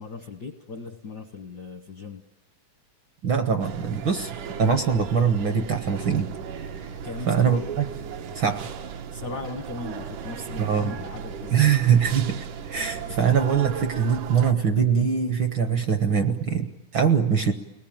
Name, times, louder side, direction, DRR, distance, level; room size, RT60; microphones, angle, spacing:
voice 1, 0.0-2.2 7.0-7.6 9.1-11.8 13.1-13.2, left 3 dB, 70° left, 6 dB, 0.9 m, -37 dB
voice 2, 3.2-6.9 7.3-7.8 8.3-8.7 10.6-10.9 11.5-17.5, right 7 dB, 65° right, 7 dB, 1.2 m, -23 dB
sound 1, 3.6-14.5, right 7 dB, 90° right, 2.7 m, -36 dB
30.0 x 20.0 x 8.8 m, 1.1 s
omnidirectional pair, 3.5 m